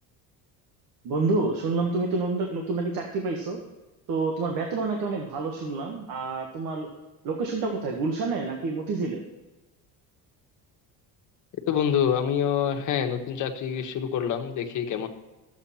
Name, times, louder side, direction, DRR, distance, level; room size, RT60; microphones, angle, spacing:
voice 1, 1.0-3.6 4.1-6.9 7.2-9.2, right 3 dB, 70° right, 2 dB, 1.7 m, -28 dB
voice 2, 11.7-15.1, left 8 dB, 55° left, 4 dB, 1.4 m, -26 dB
13.5 x 8.1 x 4.3 m, 1.1 s
cardioid pair, 145°, 36 cm